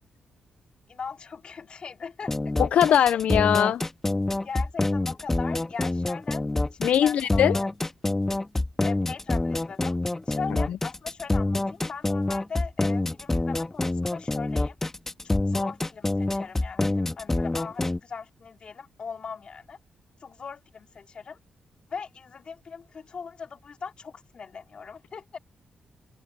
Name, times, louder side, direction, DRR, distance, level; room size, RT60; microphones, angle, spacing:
voice 1, 0.9-2.3 2.9-3.0 4.4-6.4 6.7-7.7 8.8-10.0 10.3-14.7 15.2-19.8 20.2-21.4 21.9-25.4, left 5 dB, 45° left, 3.1 m, -39 dB
sound 1, 2.3-18.0, left 2 dB, 15° left, 1.8 m, -26 dB
voice 2, 2.6-3.8 6.8-7.6 10.7-10.8, left 9 dB, 75° left, 0.4 m, -21 dB
cardioid pair, 110°, 2 cm